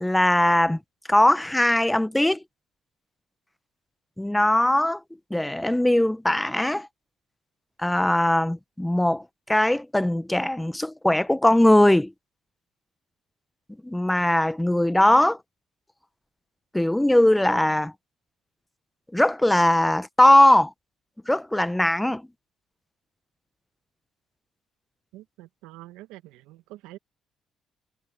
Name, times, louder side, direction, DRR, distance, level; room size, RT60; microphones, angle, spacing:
voice 1, 0.0-0.8 1.1-2.4 4.2-5.0 5.3-6.9 7.8-9.2 9.5-12.1 13.8-15.4 16.7-17.9 19.1-20.7 21.3-22.2, left 1 dB, 10° left, 0.8 m, -20 dB
voice 2, 25.1-27.0, right 17 dB, 85° right, 1.3 m, -46 dB
supercardioid pair, 60°, 0 cm